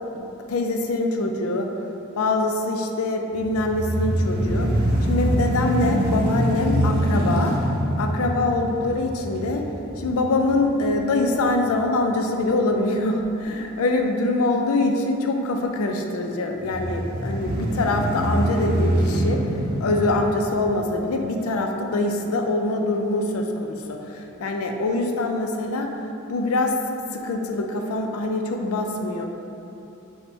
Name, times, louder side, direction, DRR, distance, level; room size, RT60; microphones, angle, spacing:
voice 1, 0.1-1.7 2.1-4.7 5.0-7.6 8.0-9.7 10.0-19.4 19.8-25.9 26.3-26.8 27.1-29.3, left 2 dB, 75° left, 3 dB, 0.4 m, -24 dB
sound 1, 3.3-11.5 12.0-12.1 16.6-21.1, right 1 dB, 45° right, 0.5 m, -24 dB
4.1 x 2.1 x 4.4 m, 2.8 s
head